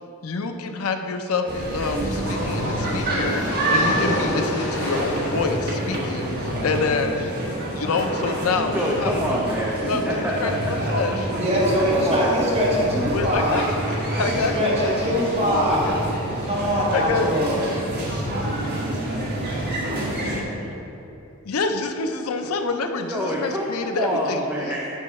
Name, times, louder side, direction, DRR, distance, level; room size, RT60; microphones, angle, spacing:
voice 1, 0.2-9.4 9.8-10.5 10.9-11.2 13.1-14.9 15.7-16.0 16.5-17.3 18.0-18.1 20.2-20.5 21.4-24.4, left 4 dB, 85° left, 6 dB, 0.5 m, -27 dB
sound 1, 1.4-6.9, left 1 dB, 60° left, 1.7 m, -31 dB
sound 2, 1.5-20.4, right 1 dB, 50° right, 1.4 m, -27 dB
voice 2, 8.7-10.9 11.9-12.7 23.1-24.9, equal, 10° right, -4 dB, 0.6 m, -26 dB
voice 3, 11.1-13.5 14.3-15.9 16.4-17.8, equal, 30° right, -6 dB, 1.7 m, -23 dB
8.1 x 5.5 x 4.2 m, 2.9 s
head